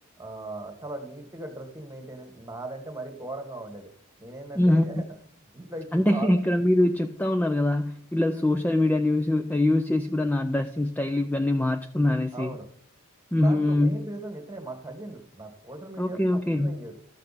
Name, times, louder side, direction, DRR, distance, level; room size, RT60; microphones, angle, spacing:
voice 1, 0.2-3.9 4.2-5.0 5.5-6.3 12.3-12.6 13.3-16.9, right 2 dB, 15° right, 6 dB, 1.6 m, -38 dB
voice 2, 4.6-4.9 5.9-12.6 13.3-14.1 16.0-16.8, left 1 dB, 10° left, 6 dB, 0.4 m, -23 dB
12.5 x 6.7 x 4.1 m, 0.63 s
head